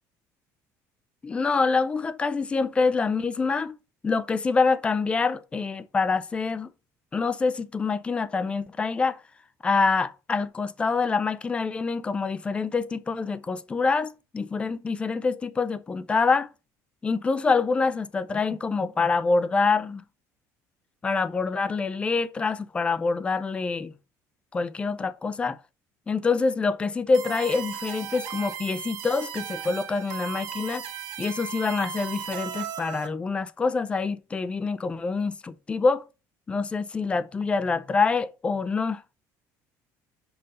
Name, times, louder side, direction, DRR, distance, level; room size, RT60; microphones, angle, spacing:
voice 1, 1.2-3.8 4.0-6.7 7.1-9.2 9.6-16.5 17.0-20.0 21.0-23.9 24.5-25.6 26.1-30.8 31.2-36.0 36.5-39.0, left 4 dB, 15° left, 0.4 m, -26 dB
sound 1, 27.1-33.1, right 8 dB, 70° right, 1.5 m, -36 dB
5.5 x 5.2 x 5.3 m
cardioid pair, 165°, 7 cm